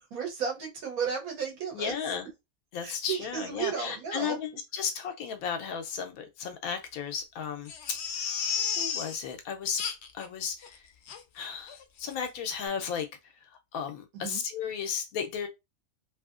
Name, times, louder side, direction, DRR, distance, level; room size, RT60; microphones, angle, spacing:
voice 1, 0.0-1.9 2.8-4.4 14.1-14.4, right 6 dB, 85° right, 1.3 m, -34 dB
voice 2, 1.7-2.3 2.7-8.3 8.8-9.8 10.1-10.8 11.3-13.1 13.7-15.5, left 7 dB, 85° left, 1.1 m, -34 dB
Crying sobbing, 7.7-9.2 9.8-10.3 10.6-10.7 11.1-11.2 11.7-11.8 12.1-12.2, left 7 dB, 65° left, 0.7 m, -32 dB
3.0 x 2.7 x 2.4 m
omnidirectional pair, 1.5 m